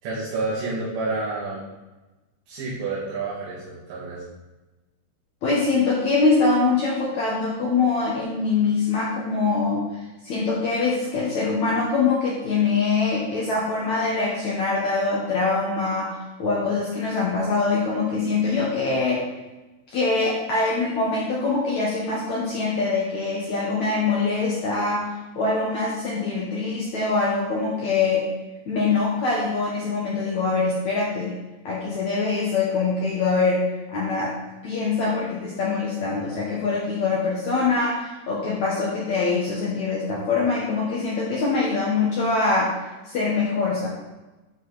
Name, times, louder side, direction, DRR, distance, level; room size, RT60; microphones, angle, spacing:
voice 1, 0.0-1.7 2.5-4.2, right 3 dB, 80° right, -10 dB, 4.2 m, -29 dB
voice 2, 5.4-9.9 10.2-19.2 19.9-28.3 28.7-31.3 31.7-34.4 34.6-42.8 43.0-43.9, left 4 dB, 70° left, -5 dB, 1.7 m, -23 dB
11.5 x 5.0 x 4.0 m, 1.1 s
omnidirectional pair, 5.1 m